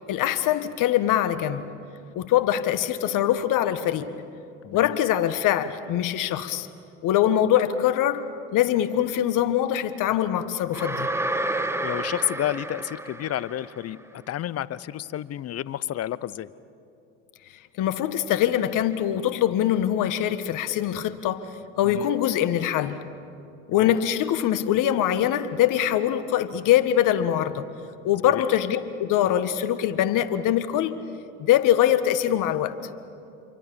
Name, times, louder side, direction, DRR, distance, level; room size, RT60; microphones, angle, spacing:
voice 1, 0.1-1.6 2.1-4.1 4.7-6.7 7.0-8.2 8.5-11.1 17.8-21.4 21.8-23.0 23.7-27.7 28.0-31.0 31.4-32.7, left 11 dB, 60° left, 12 dB, 1.6 m, -23 dB
voice 2, 4.6-5.0 11.8-16.5 21.8-22.1 23.7-24.0 28.3-28.4, left 12 dB, 45° left, 19 dB, 0.8 m, -31 dB
sound 1, 10.7-13.8, right 1 dB, 5° right, 1.7 m, -30 dB
28.0 x 24.0 x 7.1 m, 2.6 s
hypercardioid pair, 75°, 36 cm